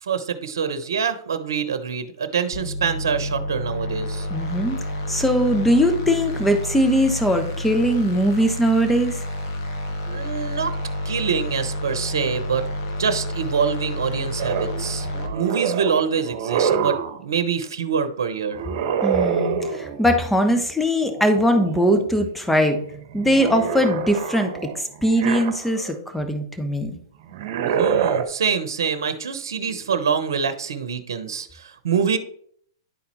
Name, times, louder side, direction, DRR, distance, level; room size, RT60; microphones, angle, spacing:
voice 1, 0.0-4.3 10.1-10.8 11.0-12.7 13.0-18.7 27.7-32.2, right 6 dB, 75° right, 11 dB, 0.9 m, -25 dB
sound 1, 2.5-15.3, left 1 dB, 55° left, 1.7 m, -29 dB
voice 2, 4.3-4.8 5.1-9.2 19.0-22.8 23.1-24.5 24.8-26.9, equal, 5° left, 6 dB, 1.2 m, -20 dB
sound 2, 14.4-17.2 18.5-20.1 21.0-22.1 22.5-26.0 27.2-28.2, right 7 dB, 50° right, 1.2 m, -26 dB
10.5 x 4.2 x 4.2 m, 0.64 s
hypercardioid pair, 120°, 2 cm